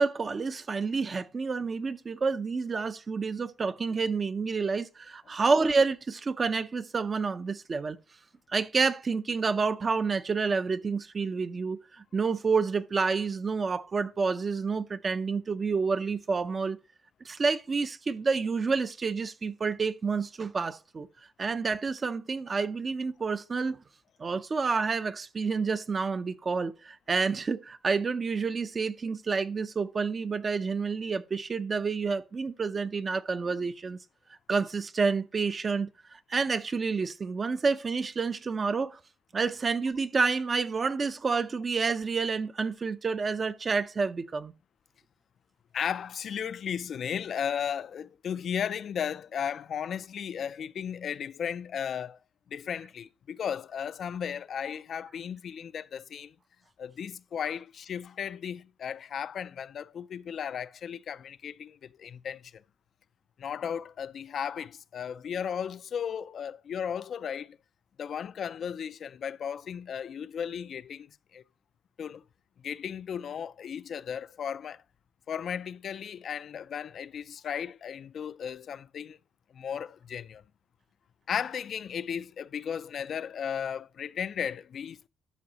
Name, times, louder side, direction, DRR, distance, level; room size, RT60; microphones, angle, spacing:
voice 1, 0.0-8.0 8.5-16.8 17.2-21.1 21.4-23.8 24.2-34.0 34.5-39.0 39.3-44.5, right 4 dB, 35° right, 0.6 m, -29 dB
voice 2, 45.7-52.2 52.5-56.3 56.8-62.5 63.4-67.6 68.0-71.1 71.3-71.4 72.0-72.2 72.6-74.8 75.3-79.2 79.5-80.4 81.3-85.1, left 8 dB, 60° left, 0.3 m, -35 dB
12.5 x 5.2 x 2.9 m
cardioid pair, 90°, 0 cm